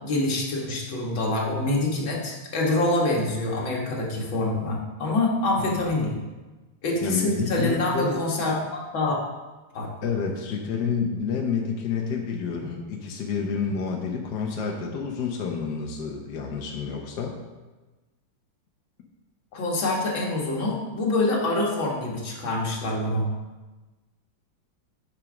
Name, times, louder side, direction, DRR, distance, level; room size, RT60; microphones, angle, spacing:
voice 1, 0.0-6.2 6.8-9.2 9.7-9.9 19.5-23.3, left 2 dB, 75° left, -2 dB, 2.3 m, -26 dB
voice 2, 7.0-8.2 10.0-17.4, left 6 dB, 60° left, 1 dB, 1.5 m, -29 dB
8.9 x 5.2 x 6.2 m, 1.2 s
omnidirectional pair, 2.1 m